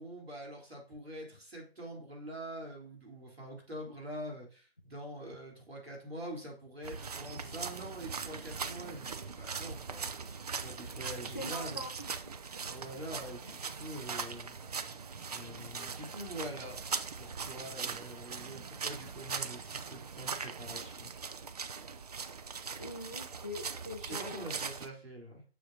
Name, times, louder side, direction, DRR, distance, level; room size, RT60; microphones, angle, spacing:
voice 1, 0.0-10.2 10.6-11.8 12.7-14.8 15.3-16.8 17.2-21.1 24.0-25.4, right 1 dB, 75° right, 0 dB, 4.0 m, -45 dB
sound 1, 6.8-24.9, right 5 dB, 40° right, 0.5 m, -40 dB
voice 2, 11.3-13.2 22.8-24.6, left 1 dB, 20° left, 5 dB, 0.4 m, -44 dB
9.6 x 6.6 x 2.8 m, 0.37 s
figure-of-eight pair, 145°, 31 cm